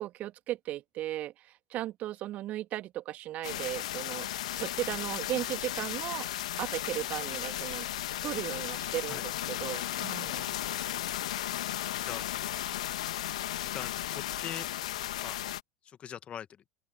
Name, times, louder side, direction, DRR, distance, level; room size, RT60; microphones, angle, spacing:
voice 1, 0.0-4.3 4.5-6.3 6.6-7.9 8.2-10.5, right 14 dB, 40° right, 2.3 m, -36 dB
sound 1, 3.4-15.6, left 13 dB, 65° left, 2.0 m, -35 dB
sound 2, 5.9-10.9, right 10 dB, 70° right, 7.4 m, -56 dB
voice 2, 11.9-12.3 13.6-14.7 15.2-15.4 15.8-16.6, left 9 dB, 30° left, 2.1 m, -43 dB
open air
figure-of-eight pair, 80°, 4 cm